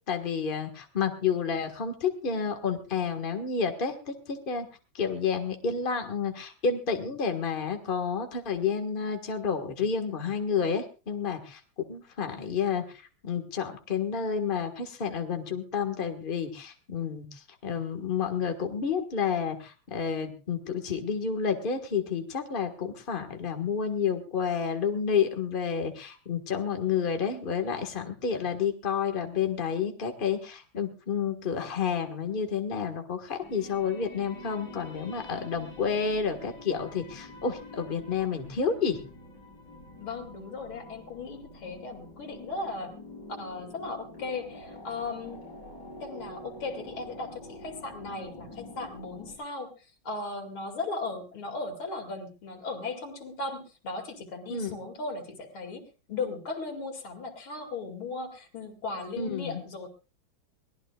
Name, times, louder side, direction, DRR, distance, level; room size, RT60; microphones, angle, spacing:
voice 1, 0.1-4.7 4.9-11.6 11.9-12.8 13.2-39.0 54.5-54.8 59.2-59.6, left 6 dB, 25° left, 4 dB, 1.7 m, -30 dB
sound 1, 33.4-49.4, left 1 dB, 55° left, 7.7 m, -46 dB
voice 2, 40.0-43.0 43.4-45.4 46.0-49.7 50.0-55.8 56.1-59.9, left 3 dB, 90° left, 4 dB, 3.4 m, -37 dB
23.0 x 18.0 x 2.4 m, 0.34 s
omnidirectional pair, 2.2 m